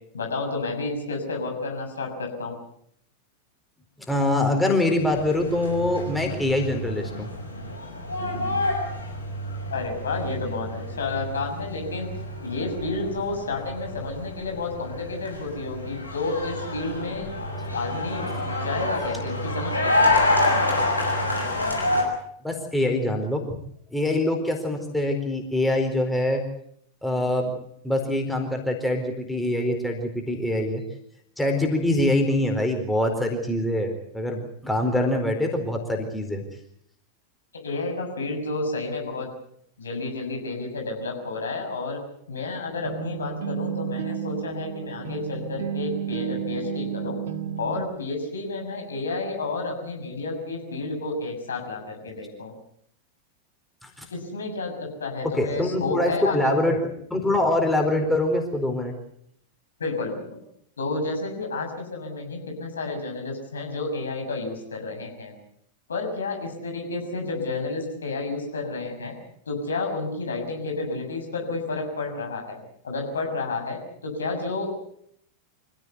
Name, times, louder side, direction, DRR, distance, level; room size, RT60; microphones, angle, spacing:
voice 1, 0.1-2.5 9.7-12.1 12.4-17.3 17.7-20.4 37.6-39.3 39.8-42.0 42.3-47.2 47.6-52.5 54.1-56.5 59.8-60.3 60.8-65.3 65.9-69.1 69.5-72.6 72.8-74.7, left 3 dB, 70° left, 3 dB, 6.5 m, -31 dB
voice 2, 4.1-7.3 22.4-23.5 23.9-26.4 27.0-27.5 27.8-30.8 31.4-36.4 53.8-54.0 55.2-56.8 57.1-58.9, left 1 dB, 5° left, 3 dB, 4.3 m, -24 dB
sound 1, 5.0-22.0, left 2 dB, 85° left, 6.1 m, -28 dB
sound 2, 42.6-47.8, right 9 dB, 60° right, 2.6 m, -32 dB
26.0 x 16.0 x 8.2 m, 0.69 s
figure-of-eight pair, 90°, 0 cm